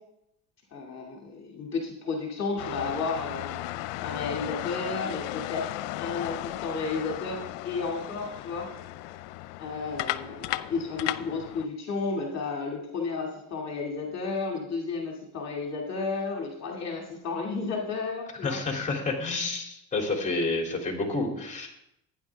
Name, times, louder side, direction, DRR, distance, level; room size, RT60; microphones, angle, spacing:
voice 1, 0.7-3.7 4.0-5.6 6.0-8.7 9.6-18.6, left 4 dB, 40° left, -1 dB, 2.5 m, -32 dB
sound 1, 2.6-11.7, left 16 dB, 80° left, 0.6 m, -35 dB
voice 2, 18.4-21.7, left 3 dB, 20° left, 1 dB, 3.2 m, -29 dB
15.5 x 9.8 x 3.6 m, 0.81 s
cardioid pair, 105°, 40 cm